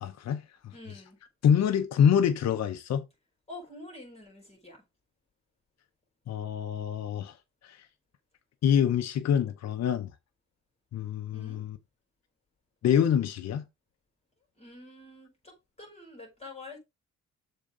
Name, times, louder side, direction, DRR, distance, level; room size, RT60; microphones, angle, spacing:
voice 1, 0.0-0.4 1.4-3.0 6.3-7.3 7.6-7.8 8.6-10.1 10.9-11.8 12.8-13.6, left 8 dB, 60° left, 0.9 m, -26 dB
voice 2, 0.7-1.2 3.5-4.8 11.3-11.6 14.6-16.8, left 2 dB, 20° left, 5.0 m, -47 dB
7.0 x 3.8 x 5.0 m
cardioid pair, 90°, 30 cm